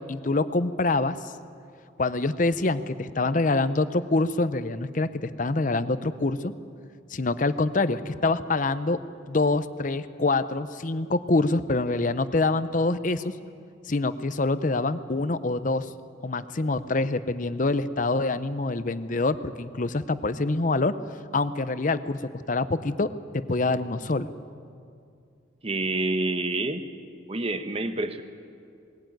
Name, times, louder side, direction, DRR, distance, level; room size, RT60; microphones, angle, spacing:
voice 1, 0.0-1.3 2.0-6.5 7.1-9.0 9.3-13.3 13.9-15.9 16.2-21.0 21.3-24.3, left 2 dB, 40° left, 13 dB, 0.7 m, -25 dB
voice 2, 25.6-26.8 27.3-28.2, right 2 dB, 30° right, 8 dB, 1.1 m, -27 dB
20.5 x 16.5 x 9.2 m, 2.4 s
head